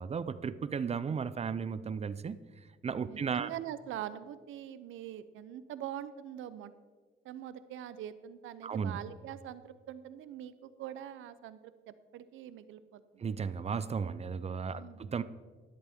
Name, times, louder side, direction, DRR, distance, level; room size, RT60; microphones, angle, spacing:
voice 1, 0.0-2.4 2.8-3.5 8.6-9.0 13.2-15.2, right 6 dB, 30° right, 15 dB, 0.5 m, -35 dB
voice 2, 3.0-6.7 7.2-13.3 14.6-15.1, right 11 dB, 85° right, 14 dB, 0.7 m, -44 dB
12.5 x 11.0 x 3.6 m, 1.5 s
cardioid pair, 90°, 20 cm